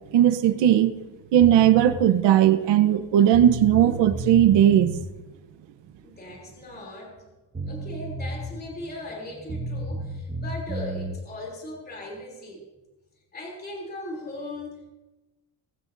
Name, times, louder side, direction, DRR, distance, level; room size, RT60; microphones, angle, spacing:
voice 1, 0.1-0.9 1.3-5.0, right 11 dB, 80° right, 1.0 m, -18 dB
sound 1, 1.4-2.0 3.0-3.1 3.3-5.0 7.2-7.3 7.5-8.7 9.5-11.2, right 2 dB, 15° right, 1.5 m, -32 dB
voice 2, 6.0-7.3 7.7-12.6 13.3-14.9, left 1 dB, 20° left, 3.1 m, -38 dB
20.5 x 15.0 x 2.7 m
cardioid pair, 180°, 42 cm